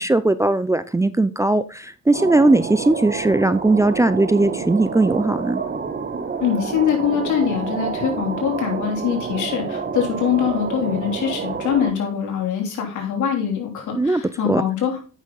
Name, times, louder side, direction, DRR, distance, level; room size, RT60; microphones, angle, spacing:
voice 1, 0.0-5.6 13.9-14.6, right 2 dB, 10° right, 13 dB, 0.4 m, -19 dB
sound 1, 2.1-11.9, right 5 dB, 35° right, 1.3 m, -28 dB
voice 2, 6.4-15.0, left 8 dB, 75° left, 1 dB, 3.2 m, -23 dB
8.9 x 6.2 x 3.9 m, 0.37 s
cardioid pair, 90°, 30 cm